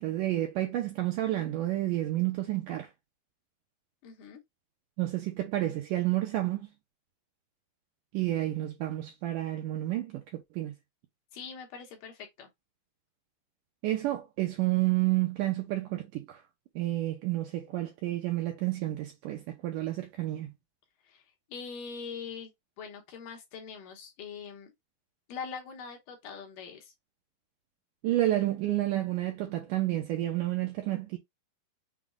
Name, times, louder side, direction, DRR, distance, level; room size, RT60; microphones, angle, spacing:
voice 1, 0.0-2.9 5.0-6.7 8.1-10.7 13.8-16.4 16.8-20.5 28.0-31.2, right 15 dB, 85° right, 1.9 m, -30 dB
voice 2, 4.0-4.4 11.3-12.5 21.0-21.2 21.5-22.5 22.8-24.7 25.3-26.9, left 6 dB, 70° left, 2.2 m, -42 dB
6.2 x 2.2 x 3.6 m
omnidirectional pair, 4.6 m